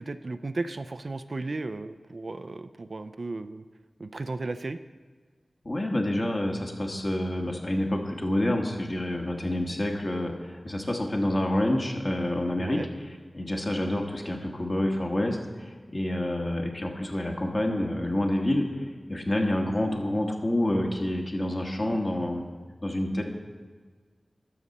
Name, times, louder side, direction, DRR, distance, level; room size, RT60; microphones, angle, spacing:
voice 1, 0.0-3.6 4.0-4.8 12.6-12.9, right 3 dB, 60° right, 11 dB, 0.4 m, -35 dB
voice 2, 5.6-12.8 13.3-22.4 22.8-23.2, left 1 dB, 35° left, 1 dB, 1.4 m, -28 dB
12.5 x 6.6 x 4.1 m, 1.5 s
wide cardioid pair, 70°, 0 cm